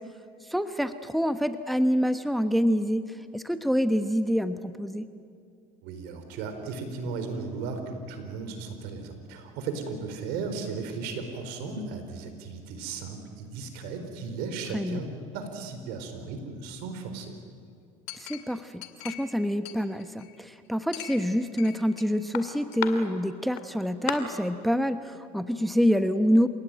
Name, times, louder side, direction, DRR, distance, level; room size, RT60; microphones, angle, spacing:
voice 1, 0.5-3.0 3.3-5.1 14.7-15.0 18.2-26.5, equal, ahead, 10 dB, 1.1 m, -26 dB
voice 2, 5.8-17.3, right 4 dB, 75° right, 7 dB, 4.7 m, -36 dB
Chink clink, 18.1-19.3 19.6-20.4 20.9-22.0 22.3-22.9 23.6-23.7 24.1-24.2, left 16 dB, 75° left, 2.4 m, -36 dB
29.5 x 17.5 x 9.2 m, 2.4 s
supercardioid pair, 95°, 17 cm